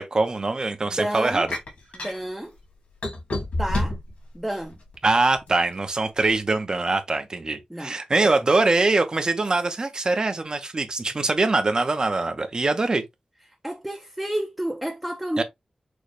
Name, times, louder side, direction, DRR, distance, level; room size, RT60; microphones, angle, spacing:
voice 1, 0.0-1.5 5.0-13.0 15.4-15.5, right 3 dB, 40° right, 0.9 m, -23 dB
voice 2, 0.8-1.5 1.9-2.5 3.5-3.9 4.3-4.8 7.7-8.0 13.6-15.4, right 1 dB, 5° right, 0.6 m, -30 dB
sound 1, 1.5-2.2 3.0-4.1 4.7-5.6, left 1 dB, 85° left, 2.2 m, -27 dB
6.2 x 2.3 x 3.3 m
wide cardioid pair, 115°, 2 cm